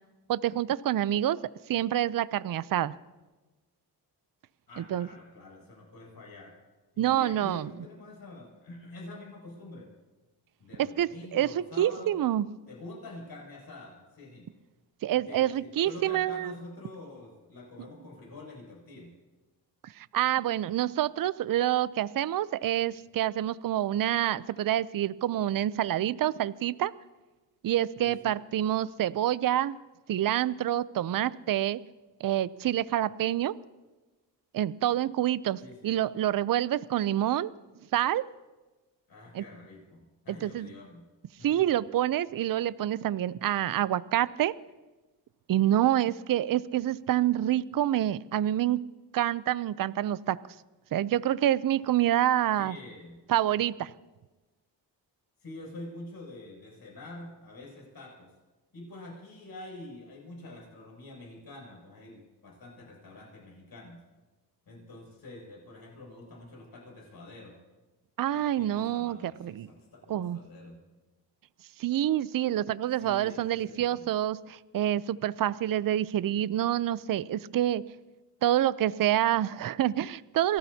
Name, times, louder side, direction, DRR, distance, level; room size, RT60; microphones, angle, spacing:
voice 1, 0.3-1.4 1.7-2.9 4.8-5.1 7.0-7.7 10.8-12.5 15.0-16.5 20.0-26.9 27.6-29.8 30.1-31.8 32.2-33.5 34.5-37.5 37.9-38.3 39.3-39.4 40.3-40.7 41.4-44.5 45.5-48.8 49.1-50.4 50.9-52.8 53.3-53.9 68.2-69.7 70.1-70.4 71.8-77.8 78.4-80.6, right 12 dB, 50° right, 17 dB, 0.6 m, -27 dB
voice 2, 4.7-6.5 6.9-9.9 10.6-12.2 12.7-14.5 15.3-19.1 28.0-28.3 35.6-35.9 39.1-41.1 41.4-41.6 52.6-53.3 55.4-58.3 58.7-64.0 64.7-67.6 68.3-70.8 73.0-74.1, left 2 dB, 60° left, -2 dB, 7.1 m, -46 dB
28.0 x 18.0 x 2.8 m, 1.2 s
cardioid pair, 70°, 42 cm